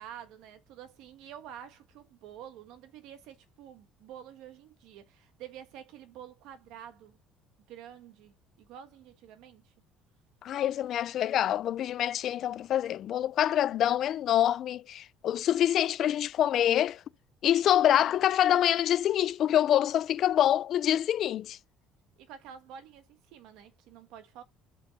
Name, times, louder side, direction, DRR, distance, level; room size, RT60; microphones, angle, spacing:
voice 1, 0.0-7.2 7.7-9.7 18.0-18.2 22.2-24.4, right 9 dB, 65° right, 1.3 m, -48 dB
voice 2, 10.4-17.0 17.4-21.6, left 11 dB, 40° left, 0.3 m, -26 dB
5.2 x 5.2 x 5.2 m
cardioid pair, 175°, 0 cm